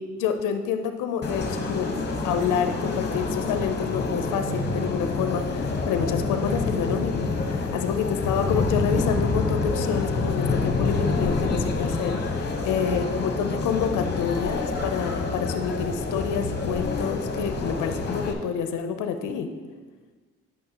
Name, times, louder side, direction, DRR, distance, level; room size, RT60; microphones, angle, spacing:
voice 1, 0.0-2.0 2.2-19.5, left 7 dB, 80° left, 8 dB, 0.6 m, -28 dB
sound 1, 1.2-18.3, left 3 dB, 35° left, 1.0 m, -27 dB
9.1 x 6.0 x 2.9 m, 1.4 s
cardioid pair, 90°, 30 cm